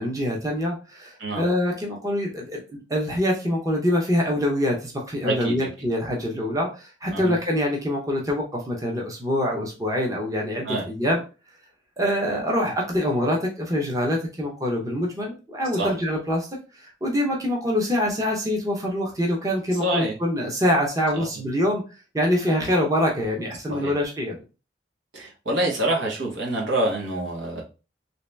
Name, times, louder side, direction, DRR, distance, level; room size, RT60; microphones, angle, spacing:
voice 1, 0.0-11.2 12.0-16.5 16.8-21.8 22.1-24.4, left 1 dB, 20° right, -1 dB, 0.7 m, -25 dB
voice 2, 5.2-5.6 7.1-7.3 10.6-10.8 15.8-15.9 19.8-20.1 21.2-21.3 23.7-23.9 25.1-27.6, right 1 dB, 80° right, -1 dB, 1.2 m, -26 dB
3.1 x 2.8 x 3.3 m, 0.32 s
head